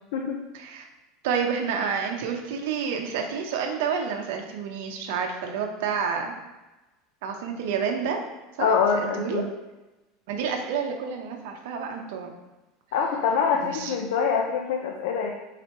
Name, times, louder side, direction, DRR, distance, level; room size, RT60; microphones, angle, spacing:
voice 1, 0.5-0.9 1.2-6.3 7.2-8.2 8.6-8.7 9.1-9.4 10.3-12.3 13.5-13.9, right 6 dB, 75° right, 3 dB, 0.7 m, -29 dB
voice 2, 8.6-9.5 12.9-15.3, left 6 dB, 75° left, 2 dB, 0.5 m, -24 dB
4.1 x 3.0 x 4.4 m, 1.1 s
supercardioid pair, 160°, 0 cm